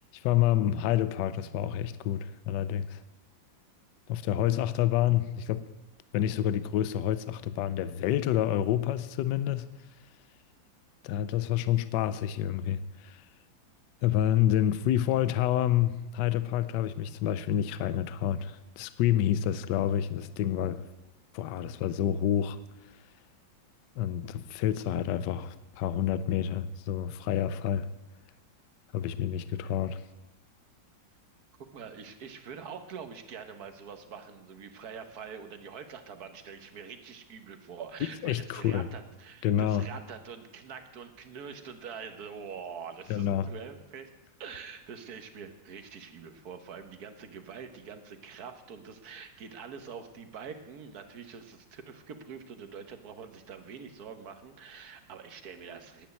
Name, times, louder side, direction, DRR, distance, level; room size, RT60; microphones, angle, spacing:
voice 1, 0.0-3.0 4.1-5.7 6.1-9.7 11.0-13.2 14.0-20.8 21.3-22.6 24.0-27.9 28.9-30.0 38.2-38.9 39.4-39.9 43.1-43.5, left 11 dB, 70° left, 1.2 m, -28 dB
voice 2, 31.7-44.1 44.4-56.1, right 6 dB, 55° right, 1.4 m, -44 dB
10.5 x 9.0 x 9.2 m
omnidirectional pair, 2.1 m